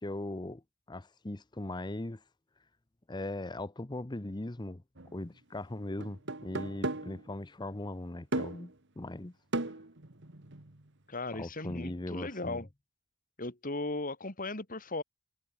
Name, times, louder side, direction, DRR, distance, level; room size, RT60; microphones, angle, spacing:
voice 1, 0.0-0.6 0.9-2.2 3.1-4.8 5.1-9.3 11.3-12.6, left 2 dB, 20° left, 0.8 m, -39 dB
sound 1, 5.0-5.1 6.0-7.2 8.3-8.7 9.5-10.8, right 2 dB, 60° right, 2.0 m, -36 dB
voice 2, 11.1-12.7 13.4-15.0, left 2 dB, 40° left, 4.1 m, -37 dB
head